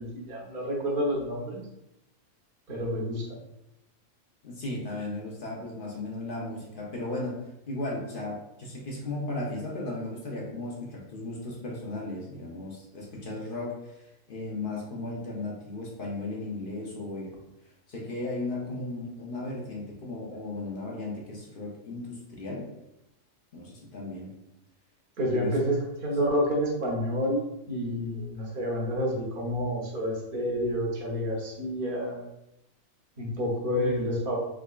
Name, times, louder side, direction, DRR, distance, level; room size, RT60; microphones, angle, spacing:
voice 1, 0.0-1.6 2.7-3.3 25.2-32.2 33.2-34.4, equal, 45° right, -2 dB, 0.9 m, -29 dB
voice 2, 4.4-17.3 17.9-22.7 23.5-24.3 25.2-25.5 33.8-34.0, left 2 dB, 50° left, -3 dB, 0.8 m, -36 dB
3.6 x 3.3 x 2.3 m, 0.87 s
omnidirectional pair, 1.4 m